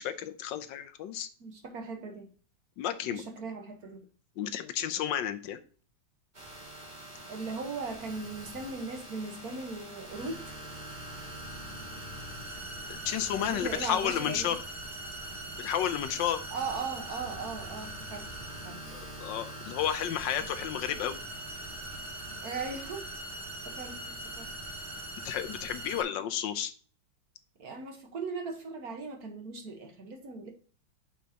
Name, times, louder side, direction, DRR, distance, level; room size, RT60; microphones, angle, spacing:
voice 1, 0.0-1.3 2.8-3.2 4.4-5.6 12.9-14.6 15.6-16.4 18.9-21.2 25.2-26.7, left 10 dB, 75° left, 1.3 m, -32 dB
voice 2, 1.4-2.3 3.1-4.1 7.3-10.6 13.4-14.5 16.5-18.8 20.4-20.6 22.4-23.1 23.6-24.6 27.6-30.5, right 4 dB, 55° right, 1.6 m, -38 dB
sound 1, 6.3-26.0, right 1 dB, 25° right, 2.3 m, -42 dB
8.7 x 6.2 x 2.9 m
omnidirectional pair, 2.1 m